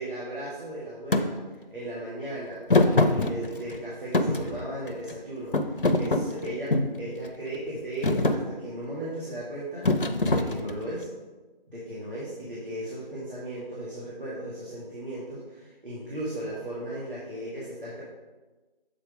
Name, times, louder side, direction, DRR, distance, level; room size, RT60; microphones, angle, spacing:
voice 1, 0.0-10.0 10.3-11.1 11.7-18.0, right 1 dB, 60° right, -7 dB, 1.9 m, -36 dB
Thump thud, 1.1-1.3 2.7-3.8 4.1-5.1 5.5-7.0 7.5-7.8 8.0-8.4 9.8-10.9, left 2 dB, 65° left, 0.6 m, -23 dB
7.2 x 4.0 x 4.8 m, 1.2 s
figure-of-eight pair, 175°, 29 cm